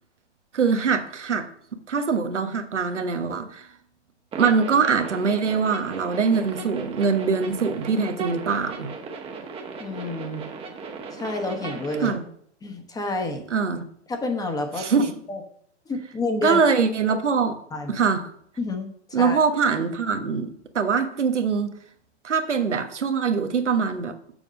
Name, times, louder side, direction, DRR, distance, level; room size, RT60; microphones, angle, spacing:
voice 1, 0.5-1.5 1.9-3.7 4.4-8.9 12.0-12.2 13.5-13.8 14.7-15.2 16.4-17.6 17.9-18.3 19.1-21.7 22.2-24.1, right 5 dB, 85° right, 1.2 m, -23 dB
sound 1, 4.3-12.1, right 4 dB, 15° right, 1.1 m, -37 dB
voice 2, 9.8-10.5 11.1-12.2 12.6-13.4 14.1-14.9 15.3-15.4 15.9-16.6 17.7-18.0 18.6-19.4, left 2 dB, 10° left, 1.1 m, -29 dB
6.9 x 5.1 x 6.4 m
hypercardioid pair, 125°, 35 cm